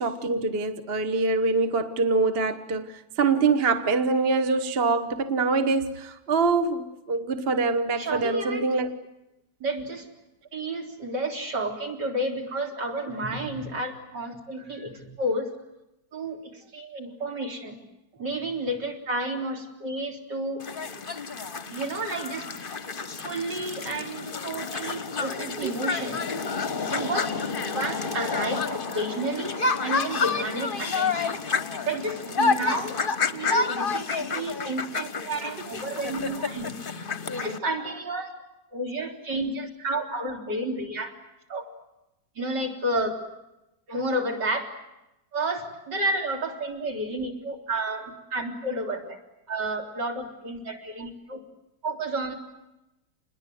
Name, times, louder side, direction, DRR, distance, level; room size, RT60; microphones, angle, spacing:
voice 1, 0.0-8.9, right 4 dB, 35° right, 1.3 m, -24 dB
voice 2, 8.0-8.7 9.6-10.1 10.5-15.5 16.1-17.8 18.1-20.7 21.7-22.4 23.2-26.2 26.9-27.3 27.7-31.4 31.9-36.7 37.4-38.3 38.7-41.1 41.5-41.6 42.4-43.2 43.9-44.7 45.3-49.2 49.5-51.4 51.8-52.3, right 1 dB, 60° right, 4.5 m, -31 dB
sound 1, 20.6-37.6, left 4 dB, 35° left, 1.1 m, -29 dB
27.5 x 21.0 x 9.3 m
omnidirectional pair, 2.1 m